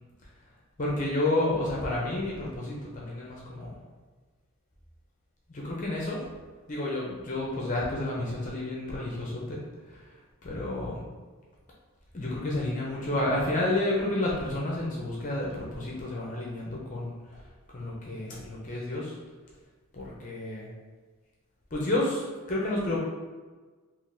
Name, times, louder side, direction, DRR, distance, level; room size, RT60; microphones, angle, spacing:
voice 1, 0.8-3.7 5.5-6.2 6.7-9.6 9.9-10.0 10.4-11.0 12.1-17.4 17.7-19.2 19.9-20.7 21.7-23.0, left 1 dB, 35° left, -4 dB, 0.5 m, -30 dB
3.6 x 2.5 x 2.6 m, 1.4 s
head